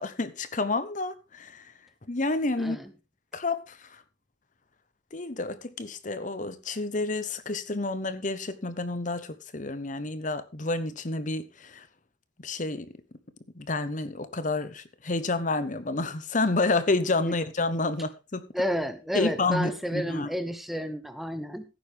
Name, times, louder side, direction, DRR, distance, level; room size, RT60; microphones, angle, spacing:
voice 1, 0.0-1.6 2.1-2.8 3.3-3.9 5.1-11.9 12.4-12.9 13.6-18.4 19.1-20.3, left 2 dB, 40° left, 1.0 m, -29 dB
voice 2, 2.6-2.9 17.3-17.4 18.5-21.6, equal, ahead, 0.8 m, -31 dB
16.0 x 9.2 x 3.5 m
head